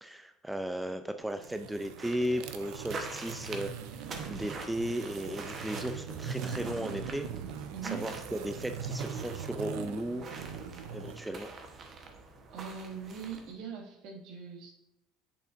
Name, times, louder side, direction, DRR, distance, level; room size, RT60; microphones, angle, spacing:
voice 1, 0.0-3.7 4.3-7.3 7.6-7.7 7.9-10.2 10.9-11.5, equal, 5° right, 7 dB, 0.4 m, -35 dB
sound 1, 1.3-11.2, right 7 dB, 80° right, 0.6 m, -41 dB
sound 2, 2.0-13.5, right 3 dB, 35° right, 1.0 m, -45 dB
voice 2, 7.7-8.1 12.5-14.7, right 6 dB, 65° right, 2 dB, 1.5 m, -41 dB
7.9 x 6.6 x 2.6 m, 0.84 s
supercardioid pair, 115°, 0 cm